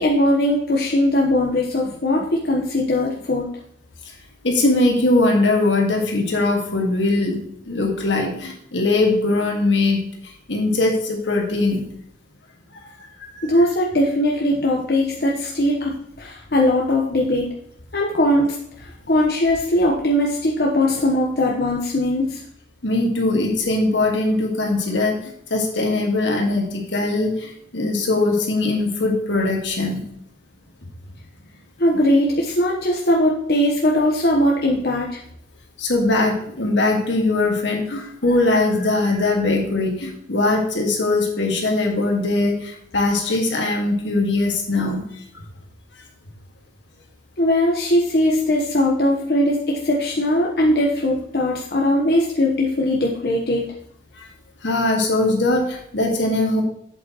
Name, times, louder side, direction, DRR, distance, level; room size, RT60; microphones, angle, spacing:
voice 1, 0.0-3.5 13.4-17.5 17.9-18.5 18.8-22.4 31.8-35.2 47.4-53.7, left 1 dB, 55° left, -3 dB, 1.1 m, -20 dB
voice 2, 4.4-11.8 12.7-13.5 22.8-30.1 35.8-45.2 54.1-54.3 54.6-56.6, left 2 dB, 80° left, 1 dB, 1.8 m, -21 dB
7.9 x 7.9 x 3.0 m, 0.69 s
head